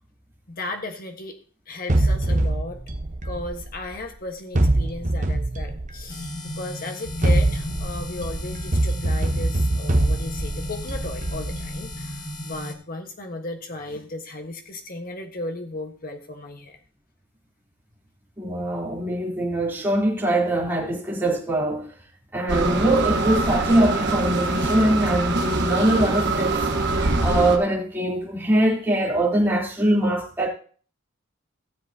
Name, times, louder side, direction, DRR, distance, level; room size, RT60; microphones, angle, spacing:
voice 1, 0.5-1.3 1.7-2.8 3.2-16.8, left 2 dB, 45° left, 1.5 m, -35 dB
sound 1, 1.9-4.0 4.5-6.4 7.0-12.1, right 1 dB, 35° right, 1.0 m, -24 dB
sound 2, 6.1-12.7, left 1 dB, 20° left, 1.5 m, -35 dB
voice 2, 18.4-21.9 22.3-26.6 27.2-30.5, right 1 dB, 10° right, 3.5 m, -22 dB
sound 3, 22.5-27.6, right 2 dB, 55° right, 1.3 m, -24 dB
16.5 x 7.4 x 2.9 m
head